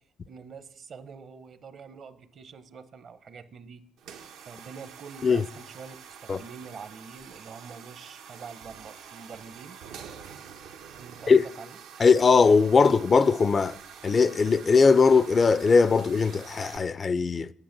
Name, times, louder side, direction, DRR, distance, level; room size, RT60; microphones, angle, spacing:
voice 1, 0.3-3.8 4.5-9.8 10.9-11.8, right 5 dB, 55° right, 0.8 m, -45 dB
sound 1, 4.0-16.8, right 7 dB, 90° right, 0.9 m, -47 dB
voice 2, 12.0-13.8 14.0-17.5, left 5 dB, 35° left, 0.3 m, -20 dB
8.8 x 8.8 x 5.9 m
cardioid pair, 100°, 0 cm